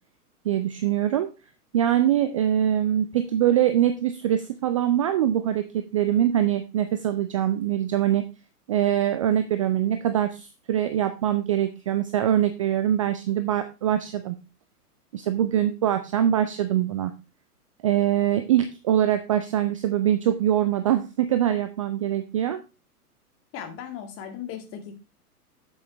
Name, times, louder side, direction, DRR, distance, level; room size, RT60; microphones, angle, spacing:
voice 1, 0.4-1.3 1.7-8.3 8.7-14.4 15.1-17.1 17.8-22.6, right 11 dB, 25° right, 10 dB, 0.4 m, -23 dB
voice 2, 23.5-25.0, left 8 dB, 30° left, 5 dB, 2.1 m, -37 dB
7.7 x 7.5 x 4.3 m, 0.29 s
figure-of-eight pair, 105°, 46 cm